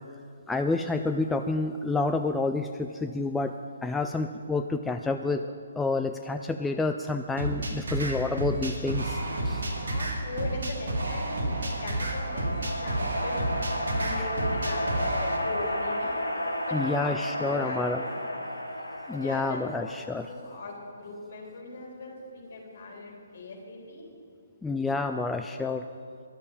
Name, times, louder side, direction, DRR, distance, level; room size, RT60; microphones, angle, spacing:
voice 1, 0.5-3.5 3.8-9.2 9.5-9.6 14.2-14.3 16.7-18.0 19.1-20.3 24.6-25.8, left 3 dB, 5° left, 6 dB, 0.3 m, -29 dB
sound 1, 7.4-15.4, right 1 dB, 60° right, 2.1 m, -30 dB
voice 2, 9.7-13.4 13.9-16.1 16.7-18.7 19.1-19.9 20.3-24.0, left 2 dB, 45° left, -1 dB, 3.6 m, -40 dB
sound 2, 10.9-20.5, equal, 85° left, 1.6 m, -33 dB
11.5 x 7.6 x 8.9 m, 2.4 s
figure-of-eight pair, 135°, 0 cm